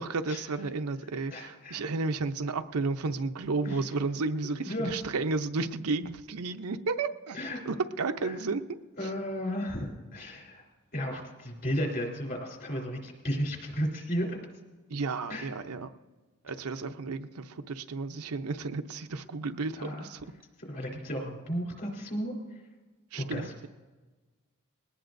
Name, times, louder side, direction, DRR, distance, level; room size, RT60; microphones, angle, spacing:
voice 1, 0.0-7.4 7.7-8.8 14.9-15.9 16.4-20.3 23.1-23.7, right 3 dB, 75° right, 8 dB, 0.7 m, -32 dB
voice 2, 1.3-1.8 3.6-3.8 4.6-4.9 7.3-7.6 8.2-8.4 9.0-10.6 10.9-14.4 15.3-15.5 19.8-20.1 20.7-22.3 23.1-23.5, equal, 45° left, 0 dB, 3.5 m, -34 dB
21.0 x 18.0 x 2.6 m, 1.3 s
head